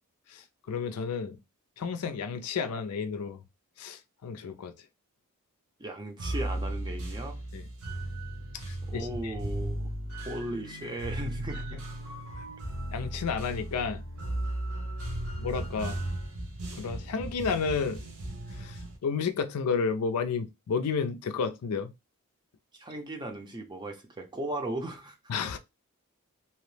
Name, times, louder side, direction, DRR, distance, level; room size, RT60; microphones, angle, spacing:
voice 1, 0.3-1.4 1.8-3.4 3.8-4.7 7.5-7.6 8.7-9.3 12.9-14.0 15.4-16.0 16.7-18.0 18.5-21.9 25.3-25.6, left 5 dB, 85° left, 0.4 m, -31 dB
voice 2, 5.8-7.5 8.9-9.9 10.2-11.8 22.8-25.2, right 1 dB, 20° right, 0.5 m, -37 dB
sound 1, 6.2-19.0, right 1 dB, 65° right, 0.9 m, -36 dB
2.8 x 2.0 x 3.1 m
head